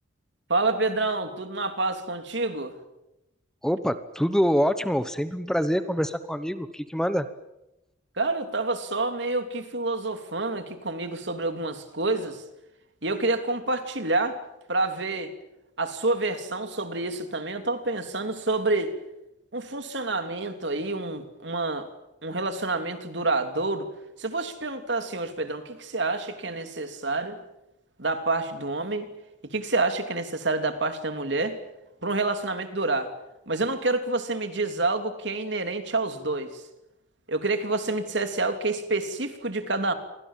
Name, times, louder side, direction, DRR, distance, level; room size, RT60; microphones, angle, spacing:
voice 1, 0.5-2.7 8.2-12.4 13.0-14.4 14.7-15.3 15.8-18.9 19.5-21.9 22.2-23.9 24.2-27.4 28.0-29.1 29.5-31.6 32.0-33.1 33.5-36.6 37.3-39.9, right 2 dB, 60° right, 7 dB, 3.1 m, -28 dB
voice 2, 3.6-7.3, equal, 5° left, 11 dB, 1.1 m, -25 dB
28.5 x 24.0 x 7.5 m, 0.91 s
head